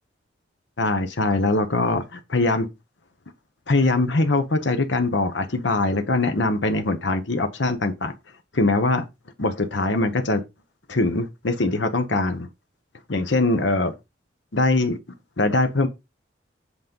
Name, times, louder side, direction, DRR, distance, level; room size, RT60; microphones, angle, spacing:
voice 1, 0.8-2.7 3.7-8.1 8.5-9.1 9.4-10.4 10.9-12.5 13.1-13.9 14.5-15.0 15.4-15.9, left 2 dB, 70° left, 1.0 m, -22 dB
8.4 x 3.8 x 5.3 m
head